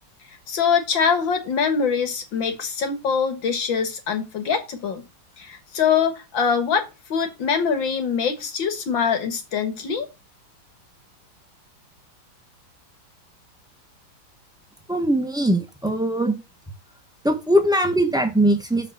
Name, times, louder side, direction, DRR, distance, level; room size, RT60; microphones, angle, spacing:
voice 1, 0.5-5.1 5.4-10.1, left 6 dB, 60° left, 2.2 m, -23 dB
voice 2, 14.9-16.4 17.2-18.9, right 1 dB, 5° right, 0.7 m, -21 dB
6.9 x 4.8 x 6.0 m
omnidirectional pair, 2.4 m